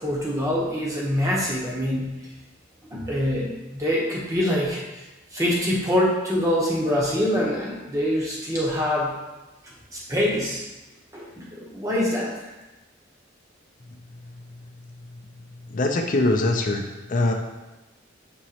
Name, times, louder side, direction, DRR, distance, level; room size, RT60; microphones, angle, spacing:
voice 1, 0.0-2.2 2.9-4.8 5.3-9.1 9.9-10.6 11.1-12.3, equal, 15° right, -4 dB, 0.8 m, -24 dB
voice 2, 15.7-17.3, left 2 dB, 40° left, 3 dB, 0.5 m, -22 dB
6.2 x 3.0 x 2.8 m, 1.1 s
head